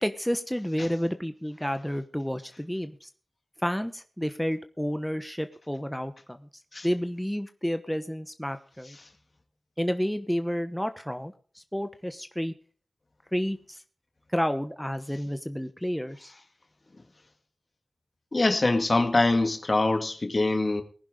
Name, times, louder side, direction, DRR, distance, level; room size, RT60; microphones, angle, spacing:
voice 1, 0.0-3.1 3.6-6.5 6.8-9.0 9.8-12.5 13.3-13.8 14.3-16.3, equal, 5° left, 1.1 m, -30 dB
voice 2, 18.3-20.8, left 2 dB, 50° left, 2.0 m, -24 dB
19.0 x 10.5 x 3.8 m
cardioid pair, 40°, 0 cm